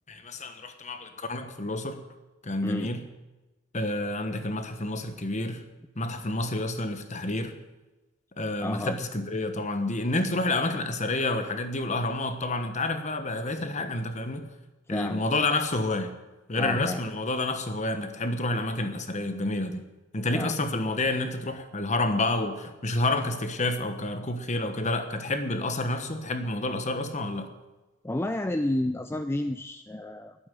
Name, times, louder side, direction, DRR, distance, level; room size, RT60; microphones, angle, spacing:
voice 1, 0.1-2.0 2.4-3.0 3.7-5.6 6.0-7.6 8.4-14.5 14.9-16.1 16.5-19.9 20.1-27.5, left 2 dB, 35° left, 8 dB, 1.3 m, -29 dB
voice 2, 8.6-9.0 14.9-15.2 16.6-17.0 20.3-20.6 28.0-30.4, left 1 dB, 10° left, 8 dB, 0.4 m, -30 dB
11.5 x 8.9 x 9.3 m, 1.1 s
head